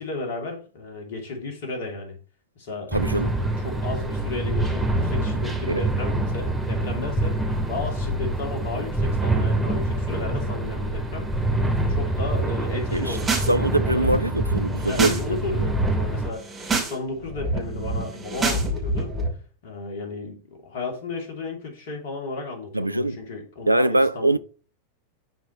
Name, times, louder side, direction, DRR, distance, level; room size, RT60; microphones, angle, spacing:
voice 1, 0.0-2.2 2.6-2.9 3.3-7.4 7.7-11.5 11.9-14.1 14.6-19.1 19.6-24.4, left 3 dB, 50° left, 2.6 m, -34 dB
sound 1, 2.9-16.3, right 1 dB, ahead, 2.1 m, -26 dB
voice 2, 2.9-3.4 5.7-5.8 12.9-13.2 13.5-15.6 22.7-23.2 23.7-24.4, right 1 dB, 85° right, 0.3 m, -23 dB
sound 2, 13.0-13.5 13.8-15.2 15.5-15.9 16.4-16.9 17.2-19.3, right 2 dB, 20° right, 2.8 m, -27 dB
11.0 x 4.7 x 3.0 m
figure-of-eight pair, 90°, 0 cm